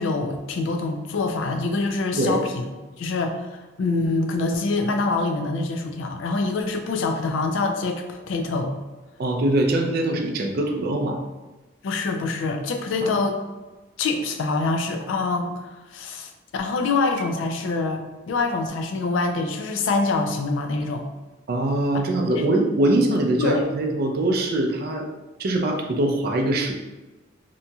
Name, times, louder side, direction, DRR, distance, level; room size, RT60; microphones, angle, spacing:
voice 1, 0.0-2.6 3.0-8.7 11.8-13.4 14.0-21.0 21.9-22.0 22.4-22.5 23.4-23.6, left 3 dB, 80° left, 5 dB, 0.4 m, -25 dB
voice 2, 9.2-11.2 13.0-13.1 21.5-25.1 25.4-26.7, right 1 dB, 50° right, 3 dB, 0.4 m, -22 dB
2.8 x 2.7 x 2.2 m, 1.1 s
head